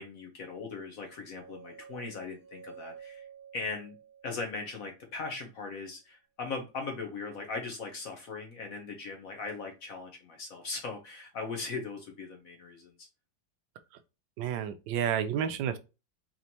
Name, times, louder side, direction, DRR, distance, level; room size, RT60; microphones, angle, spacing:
voice 1, 0.0-3.3 3.5-4.0 4.2-13.1, left 4 dB, 55° left, 1.1 m, -39 dB
sound 1, 1.1-5.2, right 7 dB, 5° right, 1.4 m, -51 dB
voice 2, 14.4-15.8, right 9 dB, 80° right, 1.2 m, -30 dB
4.3 x 3.1 x 2.8 m
omnidirectional pair, 2.1 m